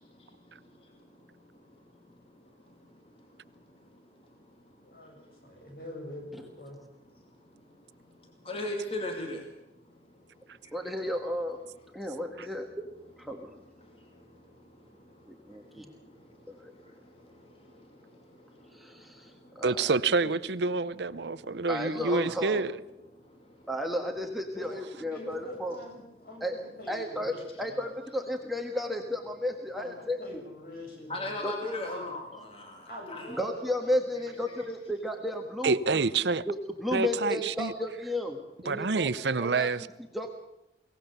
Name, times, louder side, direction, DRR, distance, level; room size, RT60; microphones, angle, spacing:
voice 1, 4.8-6.8 19.1-19.2 24.5-27.8 29.8-29.9 30.2-32.2 32.9-33.9, left 1 dB, 55° left, 0 dB, 7.9 m, -45 dB
voice 2, 8.5-9.4 31.1-32.8 33.1-33.2, left 1 dB, 35° left, 1 dB, 2.6 m, -35 dB
voice 3, 10.7-11.6 11.9-12.9 13.2-13.5 15.3-15.9 16.5-16.6 18.7-20.0 21.7-22.6 23.7-25.8 26.4-26.6 26.9-30.2 31.4-31.5 33.4-36.0 36.5-39.1 39.4-39.7 40.1-40.3, left 1 dB, ahead, 2 dB, 1.4 m, -33 dB
voice 4, 19.6-22.7 35.6-36.5 36.9-37.7 38.7-39.9, right 4 dB, 75° right, 16 dB, 0.7 m, -27 dB
23.0 x 18.0 x 6.8 m, 0.88 s
head